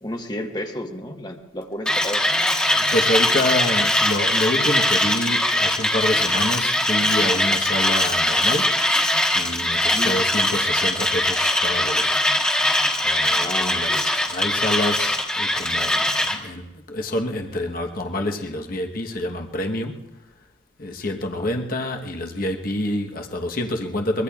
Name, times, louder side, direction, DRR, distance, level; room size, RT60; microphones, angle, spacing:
voice 1, 0.0-2.2 9.9-10.2 13.4-14.1 21.3-21.5, left 1 dB, 20° left, 4 dB, 1.2 m, -32 dB
Mechanisms, 1.9-16.4, left 1 dB, 5° left, 1.5 m, -21 dB
voice 2, 2.6-8.8 9.3-12.2 13.0-20.1 20.8-24.2, left 1 dB, 50° left, 3 dB, 1.1 m, -27 dB
23.0 x 22.5 x 2.4 m, 1.0 s
head